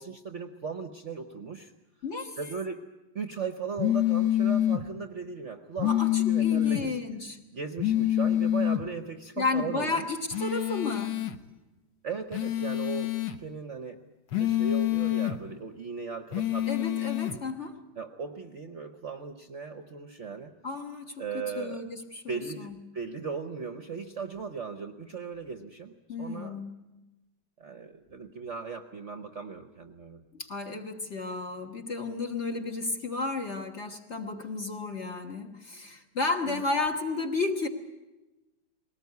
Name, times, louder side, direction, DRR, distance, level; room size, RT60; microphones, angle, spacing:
voice 1, 0.0-1.7 2.4-2.8 3.1-7.0 7.5-10.1 12.0-13.1 13.4-14.0 14.4-16.9 18.0-20.5 21.2-21.8 22.3-26.6 27.6-30.2 36.4-36.6, right 5 dB, 50° right, 7 dB, 1.0 m, -37 dB
voice 2, 2.0-2.4 5.8-7.4 9.4-11.2 16.7-17.8 20.6-21.2 21.5-22.8 26.1-26.7 30.3-37.7, left 3 dB, 35° left, 3 dB, 1.5 m, -32 dB
sound 1, 3.8-4.8 5.8-6.8 7.8-8.8 10.3-11.4 12.3-13.4 14.3-15.4 16.3-17.4, left 13 dB, 65° left, 1.6 m, -26 dB
21.0 x 18.5 x 9.4 m, 1.1 s
omnidirectional pair, 2.2 m